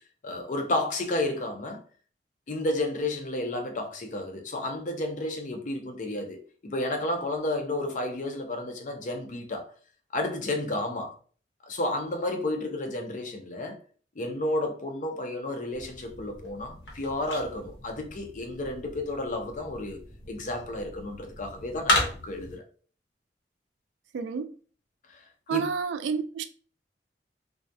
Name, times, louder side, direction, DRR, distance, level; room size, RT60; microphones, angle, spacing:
voice 1, 0.2-1.8 2.5-9.7 10.1-11.1 11.6-13.8 14.2-20.0 20.3-22.6 25.1-25.2 25.5-25.7, left 1 dB, 45° left, 0.5 m, -31 dB
sound 1, 15.7-22.6, left 1 dB, 80° left, 0.8 m, -34 dB
voice 2, 24.1-24.5 25.5-26.4, right 6 dB, 90° right, 0.3 m, -29 dB
2.3 x 2.1 x 2.6 m
head